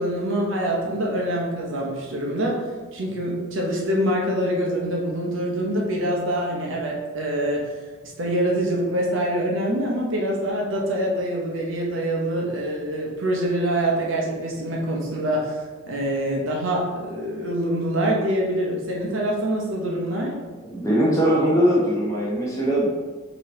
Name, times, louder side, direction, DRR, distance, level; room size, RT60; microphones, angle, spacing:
voice 1, 0.0-2.6 2.9-7.7 8.0-15.6 15.9-20.4, right 1 dB, 60° right, -1 dB, 0.8 m, -25 dB
voice 2, 20.7-22.9, equal, 15° left, -5 dB, 0.9 m, -20 dB
4.7 x 3.0 x 3.0 m, 1.3 s
head